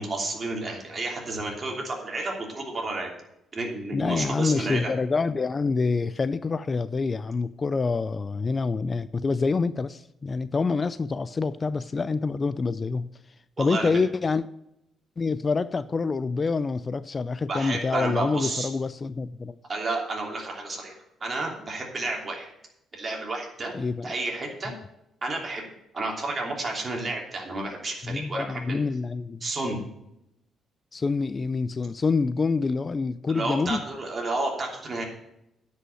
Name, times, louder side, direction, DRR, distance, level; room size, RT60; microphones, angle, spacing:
voice 1, 0.0-3.1 3.5-4.9 13.6-13.9 17.5-18.7 19.7-20.9 21.2-22.5 22.9-23.7 24.0-24.7 25.2-25.6 25.9-28.8 29.4-29.8 33.3-35.0, right 2 dB, 35° right, 0 dB, 3.1 m, -31 dB
voice 2, 3.9-13.1 13.6-14.5 15.2-19.6 23.7-24.1 24.7-24.8 28.0-29.5 30.9-33.8, left 4 dB, 35° left, 16 dB, 0.4 m, -26 dB
9.7 x 5.6 x 7.7 m, 0.83 s
cardioid pair, 90°, 0 cm